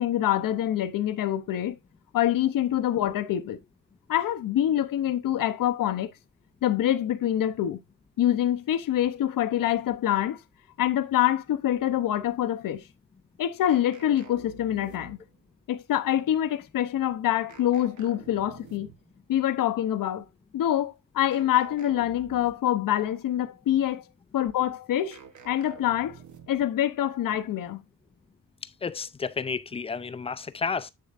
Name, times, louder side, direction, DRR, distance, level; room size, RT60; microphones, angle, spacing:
voice 1, 0.0-1.8 2.1-3.6 4.1-6.1 6.6-7.8 8.2-10.4 10.8-12.8 13.4-15.2 15.7-18.9 19.3-20.2 20.5-24.0 24.3-25.2 25.4-26.2 26.5-27.8, left 11 dB, 80° left, 0.7 m, -25 dB
sound 1, 13.7-15.5 17.5-19.2 21.3-22.8 25.1-26.7, right 7 dB, 60° right, 1.1 m, -48 dB
voice 2, 28.8-30.9, left 5 dB, 20° left, 0.4 m, -31 dB
7.7 x 6.7 x 2.5 m
wide cardioid pair, 150°, 33 cm